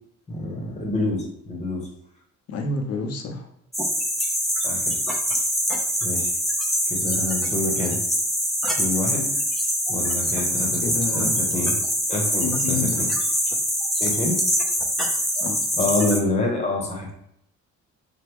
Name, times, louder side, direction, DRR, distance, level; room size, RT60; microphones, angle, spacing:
voice 1, 0.3-1.8 4.6-4.9 6.0-6.3 6.9-8.0 8.8-9.4 9.9-11.7 12.1-13.1 14.0-14.4 15.8-17.1, left 2 dB, 20° left, 0 dB, 0.9 m, -27 dB
voice 2, 2.5-3.5 10.8-11.3 12.4-13.0 15.4-15.9, left 3 dB, 55° left, 3 dB, 0.7 m, -29 dB
sound 1, 3.7-16.2, equal, ahead, 0.6 m, -24 dB
3.5 x 2.2 x 3.0 m, 0.74 s
cardioid pair, 90°, 30 cm